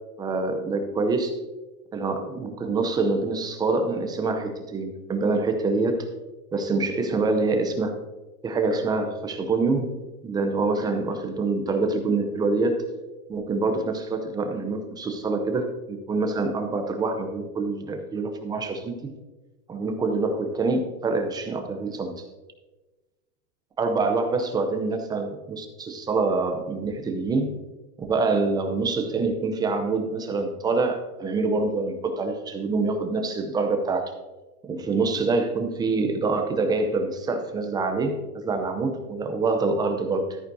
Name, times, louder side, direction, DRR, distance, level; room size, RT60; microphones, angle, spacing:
voice 1, 0.2-1.4 1.9-6.1 6.5-7.9 8.4-9.9 10.2-12.8 13.3-19.1 19.7-22.3 23.8-27.5 28.0-34.0 34.7-40.4, right 3 dB, 10° right, 5 dB, 0.5 m, -26 dB
13.5 x 9.1 x 2.7 m, 1.1 s
hypercardioid pair, 140°, 47 cm